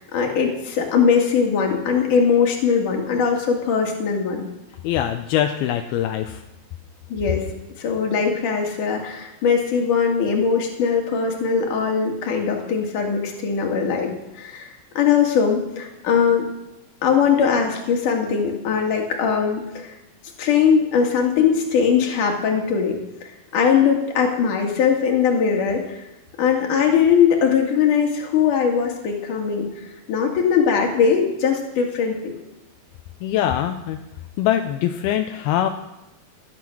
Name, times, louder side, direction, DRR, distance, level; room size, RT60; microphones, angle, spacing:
voice 1, 0.0-4.4 7.1-7.4 7.8-14.7 15.0-16.5 17.0-19.9 20.4-26.0 26.4-29.7 30.1-32.3, left 6 dB, 60° left, 1 dB, 3.5 m, -20 dB
voice 2, 4.8-6.4 33.2-34.0 34.4-35.7, left 11 dB, 80° left, 6 dB, 2.6 m, -23 dB
20.0 x 9.8 x 6.2 m, 0.95 s
omnidirectional pair, 4.4 m